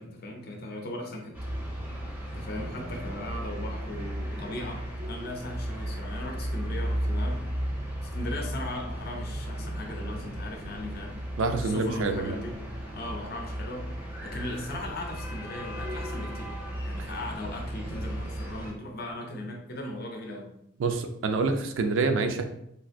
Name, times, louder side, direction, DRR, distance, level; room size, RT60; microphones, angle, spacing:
voice 1, 0.0-1.4 2.3-7.5 8.0-11.2 11.6-12.6 12.9-13.9 14.2-16.5 16.8-20.5, left 1 dB, 50° left, 2 dB, 0.6 m, -38 dB
sound 1, 1.3-18.7, equal, 10° right, 0.5 m, -35 dB
voice 2, 11.4-12.4 20.8-22.5, right 3 dB, 75° right, 7 dB, 0.4 m, -27 dB
3.3 x 2.5 x 2.5 m, 0.75 s
head